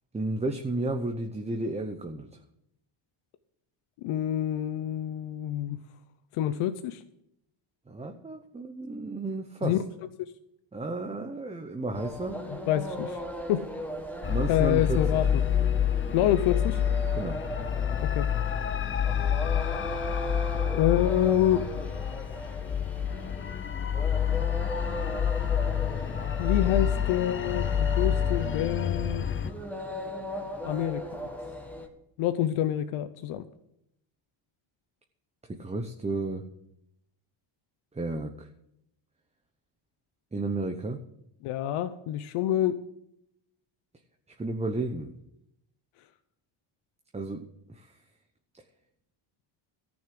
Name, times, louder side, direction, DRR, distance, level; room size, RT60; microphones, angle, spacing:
voice 1, 0.1-2.3 7.9-9.8 10.7-12.4 14.3-15.2 17.1-17.4 35.5-36.5 37.9-38.5 40.3-41.0 44.4-45.1 47.1-48.0, right 2 dB, 15° right, 4 dB, 0.8 m, -32 dB
voice 2, 4.0-5.8 6.3-7.0 9.6-9.8 10.2-10.3 12.5-13.2 13.5-13.7 14.5-15.4 16.1-16.8 18.0-18.3 20.7-21.7 26.4-29.3 30.6-31.0 32.2-33.5 41.4-42.8, left 11 dB, 85° left, 10 dB, 0.8 m, -27 dB
sound 1, 11.9-31.9, equal, 5° left, 1.4 m, -38 dB
sound 2, 14.2-29.5, left 9 dB, 25° left, 0.5 m, -28 dB
14.0 x 6.3 x 7.7 m, 0.80 s
cardioid pair, 120°, 49 cm